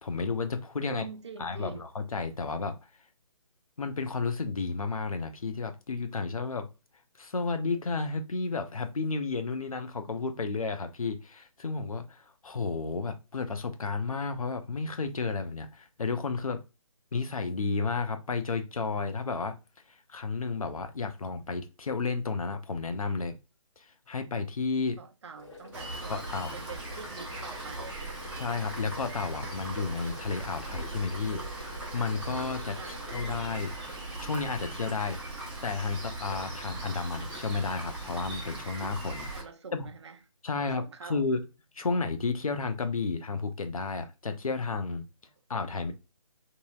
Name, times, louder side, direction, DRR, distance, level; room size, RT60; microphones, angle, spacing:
voice 1, 0.0-1.1 1.4-2.8 3.8-6.7 7.2-16.6 17.1-19.6 20.1-23.3 23.8-25.0 26.1-26.5 28.4-33.7 34.2-35.2 35.6-39.3 39.7-39.9 40.4-41.4 41.7-45.0 45.5-45.9, left 4 dB, 75° left, 0.6 m, -32 dB
voice 2, 0.8-1.8 25.0-28.0 32.8-33.0 39.3-40.2 40.6-41.2, right 5 dB, 50° right, 0.4 m, -45 dB
sound 1, 25.4-33.7, left 4 dB, 50° left, 1.2 m, -50 dB
Rain, 25.7-39.4, right 2 dB, 5° right, 0.8 m, -39 dB
2.8 x 2.8 x 2.3 m
figure-of-eight pair, 150°, 18 cm